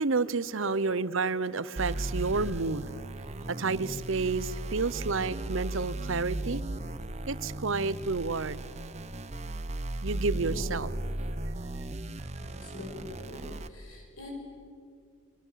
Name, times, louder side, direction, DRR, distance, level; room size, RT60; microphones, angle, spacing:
voice 1, 0.0-3.0 3.5-6.6 7.3-8.6 10.0-10.9, right 4 dB, 70° right, 0.8 m, -30 dB
sound 1, 1.8-13.7, right 1 dB, 30° right, 0.9 m, -36 dB
voice 2, 10.5-10.9 12.4-13.4 13.7-14.3, left 2 dB, 80° left, 6.3 m, -43 dB
29.5 x 25.0 x 7.5 m
head